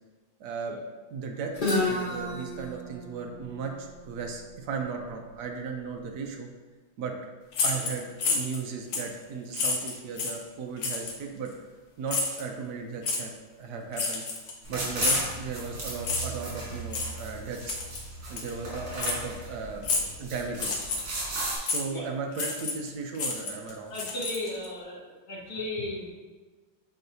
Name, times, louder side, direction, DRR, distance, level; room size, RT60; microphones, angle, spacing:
voice 1, 0.4-0.8 1.1-6.5 7.0-7.1 7.6-11.5 12.0-14.2 14.7-17.8 18.3-19.9 20.2-20.8 21.6-23.9, right 5 dB, 60° right, 2 dB, 1.2 m, -36 dB
Guitar, 1.5-5.3, left 2 dB, 30° left, 1.0 m, -32 dB
sound 1, 7.5-8.6 8.9-9.1 9.5-10.4 10.8-11.2 12.1-12.4 13.0-13.2 13.9-14.7 15.0-15.3 16.0-16.4 16.9-17.1 17.7-18.0 18.4-18.5 19.0-19.2 19.8-20.2 20.5-21.2 21.7-21.8 22.3-22.9 23.1-24.7, left 4 dB, 65° left, 1.5 m, -29 dB
sound 2, 14.6-21.6, right 2 dB, 85° right, 3.0 m, -36 dB
voice 2, 23.8-25.0 25.3-26.1, left 1 dB, 85° left, -7 dB, 2.5 m, -35 dB
7.8 x 4.7 x 2.8 m, 1.4 s
omnidirectional pair, 2.3 m